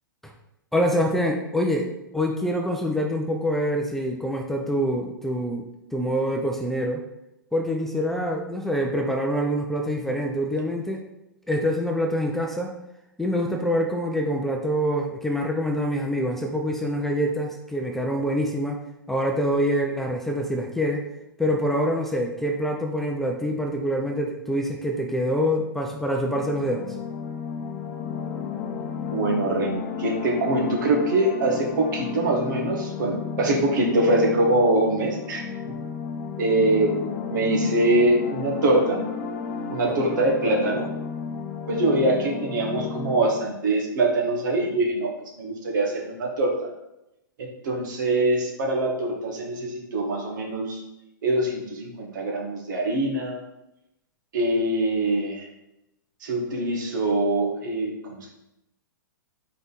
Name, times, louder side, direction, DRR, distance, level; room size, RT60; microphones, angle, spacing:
voice 1, 0.7-1.9 2.1-5.6 5.9-7.0 7.5-11.0 11.5-12.7 13.2-18.8 19.1-21.0 21.4-27.0, equal, 5° left, 1 dB, 0.6 m, -25 dB
sound 1, 26.2-43.5, left 6 dB, 45° left, 0.6 m, -33 dB
voice 2, 29.0-35.5 36.4-36.9 37.3-39.0 39.7-40.9 41.7-45.1 45.4-46.7 47.4-50.8 51.2-53.4 54.3-55.5 56.2-58.3, right 2 dB, 60° right, 0 dB, 1.6 m, -23 dB
5.2 x 4.6 x 4.1 m, 0.87 s
hypercardioid pair, 110°, 11 cm